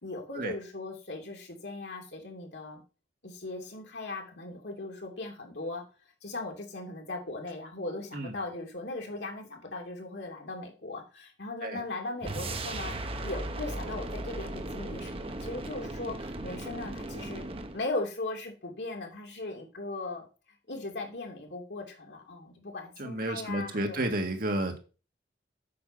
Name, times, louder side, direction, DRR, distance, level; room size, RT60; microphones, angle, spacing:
voice 1, 0.0-2.8 3.2-5.8 6.2-12.9 13.2-17.4 17.7-20.3 20.7-24.0, left 2 dB, 70° left, 1 dB, 2.9 m, -38 dB
sound 1, 12.2-17.8, right 2 dB, 30° right, 1.0 m, -37 dB
voice 2, 23.0-24.8, right 1 dB, 55° right, 4 dB, 1.9 m, -31 dB
8.6 x 5.6 x 5.4 m, 0.33 s
head